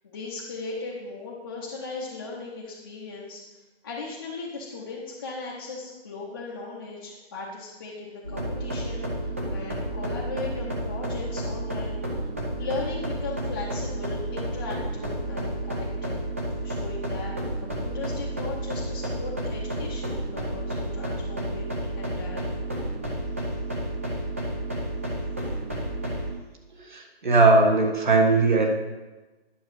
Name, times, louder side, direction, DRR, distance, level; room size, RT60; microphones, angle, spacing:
voice 1, 0.0-3.4 3.8-12.3 12.6-16.2 16.6-22.6 23.4-23.5, left 3 dB, 20° left, -6 dB, 0.9 m, -37 dB
sound 1, 8.2-26.3, right 1 dB, 15° right, 0.6 m, -31 dB
voice 2, 26.8-28.7, right 3 dB, 50° right, 1 dB, 1.5 m, -19 dB
10.5 x 6.3 x 4.8 m, 1.2 s
hypercardioid pair, 165°, 31 cm